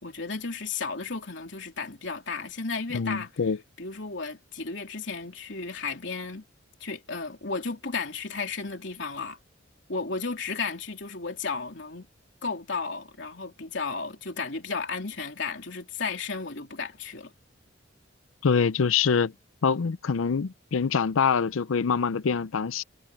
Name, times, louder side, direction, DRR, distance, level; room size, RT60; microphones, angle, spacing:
voice 1, 0.0-3.3 3.8-6.4 6.8-9.4 9.9-12.1 12.4-17.3, left 4 dB, 65° left, 3.5 m, -34 dB
voice 2, 2.9-3.6 18.4-19.3 19.6-22.8, left 6 dB, 85° left, 0.5 m, -25 dB
head